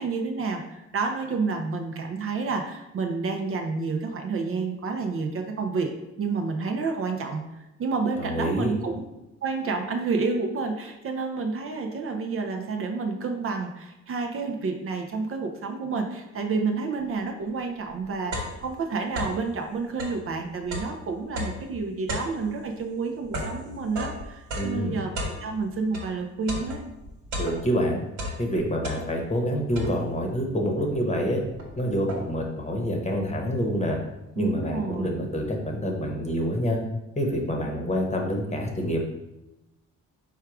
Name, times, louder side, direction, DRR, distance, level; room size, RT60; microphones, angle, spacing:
voice 1, 0.0-7.4 7.8-9.1 9.4-25.1 25.4-26.8 34.4-35.2, right 4 dB, 45° right, 4 dB, 0.5 m, -29 dB
voice 2, 8.2-8.7 24.5-25.0 27.4-28.0 28.4-31.4 31.8-34.0 34.4-36.8 37.2-39.0, equal, 20° left, 1 dB, 0.9 m, -27 dB
sound 1, 17.4-17.5 17.9-19.5 19.9-26.1 26.5-27.8 28.1-29.4 29.8-30.3 30.9-31.0 31.3-32.5, equal, 75° right, 1.3 m, -35 dB
4.5 x 2.3 x 4.7 m, 0.95 s
cardioid pair, 90°, 30 cm